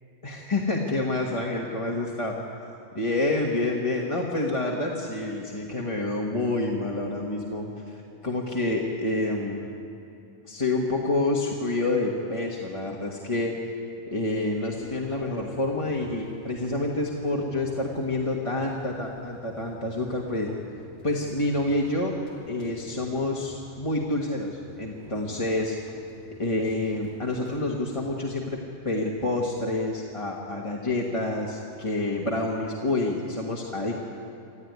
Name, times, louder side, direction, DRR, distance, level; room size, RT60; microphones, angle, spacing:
voice 1, 0.2-2.3 2.9-9.6 10.5-13.5 14.1-20.5 21.0-22.2 22.5-25.8 26.4-28.6 28.8-34.0, left 2 dB, 25° left, -2 dB, 1.6 m, -28 dB
sound 1, 14.7-28.6, right 1 dB, 35° right, 4.3 m, -49 dB
26.0 x 14.5 x 9.6 m, 2.8 s
omnidirectional pair, 1.4 m